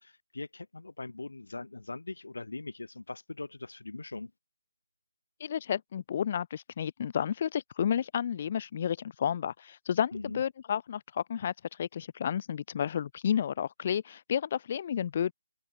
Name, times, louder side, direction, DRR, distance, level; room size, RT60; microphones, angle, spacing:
voice 1, 0.0-4.3 10.1-10.4, left 3 dB, 75° left, 5.2 m, -41 dB
voice 2, 5.4-15.3, left 8 dB, 35° left, 0.5 m, -31 dB
open air
figure-of-eight pair, 155°, 0 cm